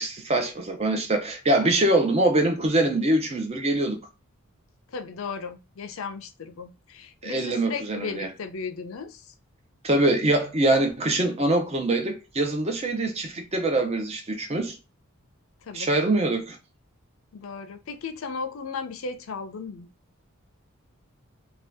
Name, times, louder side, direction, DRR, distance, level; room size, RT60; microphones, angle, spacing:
voice 1, 0.0-4.0 7.2-8.3 9.8-14.8 15.7-16.6, right 2 dB, 30° right, 0.6 m, -24 dB
voice 2, 4.9-9.3 15.6-15.9 17.3-19.9, left 5 dB, 70° left, 0.4 m, -36 dB
2.6 x 2.3 x 3.4 m
head